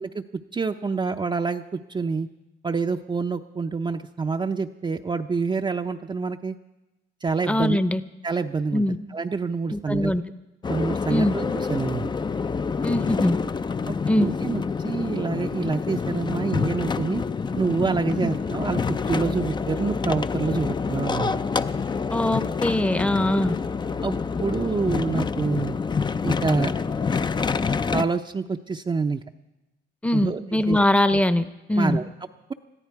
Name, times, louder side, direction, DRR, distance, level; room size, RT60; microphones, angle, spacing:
voice 1, 0.5-2.3 2.6-6.6 7.2-7.8 8.2-8.8 9.1-10.1 10.7-12.1 13.9-17.2 17.6-18.8 19.1-21.4 24.0-24.1 24.4-25.8 26.2-26.7 27.9-29.2 30.1-30.4 30.7-30.8 31.8-32.1, right 4 dB, 25° right, 4 dB, 0.6 m, -27 dB
voice 2, 7.5-8.0 8.7-9.0 9.7-10.2 11.1-11.4 12.8-13.4 14.1-14.3 18.2-18.3 22.1-23.6 30.0-32.0, left 1 dB, 5° left, 13 dB, 0.8 m, -22 dB
sound 1, 10.6-28.0, left 5 dB, 25° left, 0.4 m, -27 dB
21.0 x 14.0 x 4.7 m, 1.0 s
cardioid pair, 90°, 20 cm